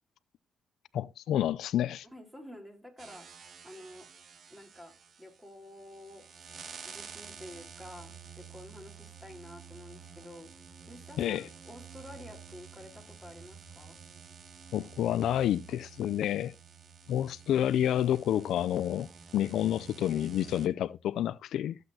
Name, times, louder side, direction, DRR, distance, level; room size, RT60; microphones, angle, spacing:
voice 1, 0.9-2.1 11.2-11.5 14.7-16.5 17.1-21.8, left 11 dB, 75° left, 0.4 m, -29 dB
voice 2, 2.1-4.1 4.5-6.5 6.8-10.5 10.9-14.0, left 1 dB, 5° right, 4.0 m, -50 dB
sound 1, 3.0-20.7, right 6 dB, 55° right, 1.2 m, -50 dB
14.0 x 8.0 x 2.8 m
cardioid pair, 90°, 0 cm